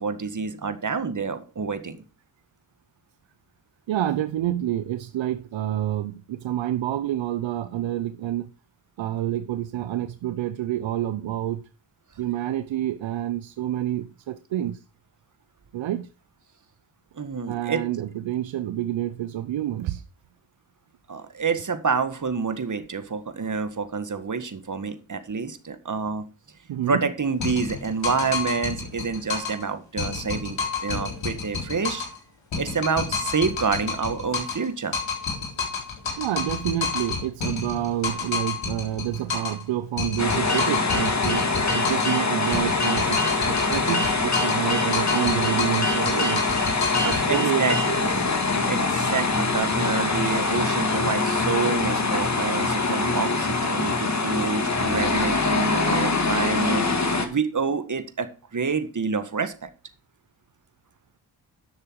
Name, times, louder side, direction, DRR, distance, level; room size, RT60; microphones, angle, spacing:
voice 1, 0.0-2.0 17.2-17.8 21.1-26.2 26.9-32.1 32.6-35.0 47.0-48.3 48.7-56.9 57.3-59.7, right 5 dB, 40° right, 1.8 m, -28 dB
voice 2, 3.9-8.4 9.0-11.6 12.2-14.8 15.7-16.1 17.5-20.0 26.7-27.0 36.2-46.4 47.0-48.0, right 12 dB, 80° right, 0.8 m, -28 dB
sound 1, 27.4-29.6 30.0-32.2 32.5-34.7 34.9-39.6 40.0-42.2 42.5-44.7 44.9-47.2, left 5 dB, 75° left, 3.8 m, -30 dB
sound 2, 40.2-57.3, left 3 dB, 35° left, 2.1 m, -24 dB
11.0 x 6.7 x 4.7 m
cardioid pair, 50°, 45 cm